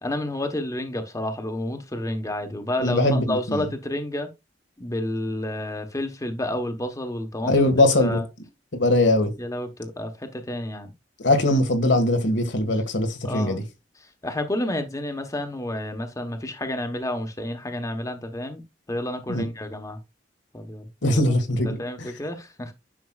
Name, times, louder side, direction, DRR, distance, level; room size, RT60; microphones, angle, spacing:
voice 1, 0.0-4.3 4.8-7.7 8.0-8.2 9.4-10.9 13.2-13.6 14.2-18.6 18.9-20.0 20.5-21.2 21.6-22.7, left 1 dB, 20° left, 1.0 m, -30 dB
voice 2, 2.8-3.7 7.4-8.2 8.7-9.3 11.2-13.6 19.3-19.4 21.0-21.8, left 1 dB, 90° left, 1.7 m, -21 dB
9.6 x 6.1 x 2.3 m
head